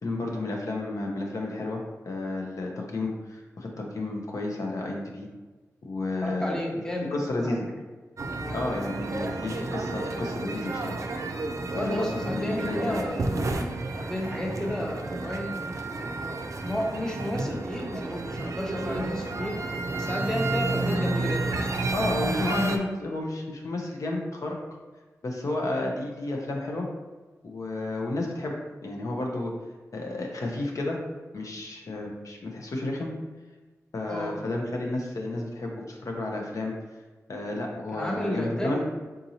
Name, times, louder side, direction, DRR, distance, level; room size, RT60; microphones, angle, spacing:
voice 1, 0.0-5.3 5.8-6.5 7.1-7.6 8.5-11.0 11.7-13.0 21.9-24.6 25.2-26.9 27.4-28.6 28.8-29.5 29.9-31.0 31.3-33.1 33.9-36.7 37.3-38.8, left 2 dB, 65° left, 0 dB, 0.6 m, -31 dB
voice 2, 6.2-7.5 8.4-8.6 11.7-15.6 16.0-16.4 16.6-19.6 19.9-21.7 34.1-34.4 37.9-38.8, equal, 10° left, 0 dB, 0.7 m, -32 dB
sound 1, 8.2-22.8, right 2 dB, 60° right, 0.4 m, -31 dB
3.7 x 2.8 x 2.7 m, 1.3 s
cardioid pair, 55°, 6 cm